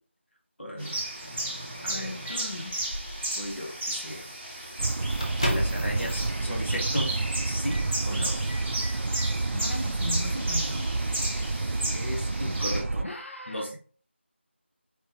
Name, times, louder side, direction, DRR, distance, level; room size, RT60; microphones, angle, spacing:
voice 1, 0.6-1.1 1.8-2.1 3.4-4.3 5.5-7.1 7.5-8.4 11.9-13.1 13.5-13.8, equal, 70° left, -1 dB, 1.9 m, -35 dB
sound 1, 0.8-12.8, right 1 dB, 10° right, 0.7 m, -35 dB
Microwave oven, 1.2-2.6 3.6-3.8 4.1-4.3 4.6-6.0 6.3-6.4 7.1-7.3 7.6-7.9 8.3-9.3, equal, 30° left, 0.9 m, -35 dB
voice 2, 1.9-2.8 9.5-10.9 13.0-13.7, left 1 dB, 85° left, 1 dB, 1.0 m, -37 dB
sound 2, 4.8-13.0, right 3 dB, 85° right, 0.3 m, -29 dB
4.5 x 3.9 x 2.9 m, 0.41 s
figure-of-eight pair, 180°, 7 cm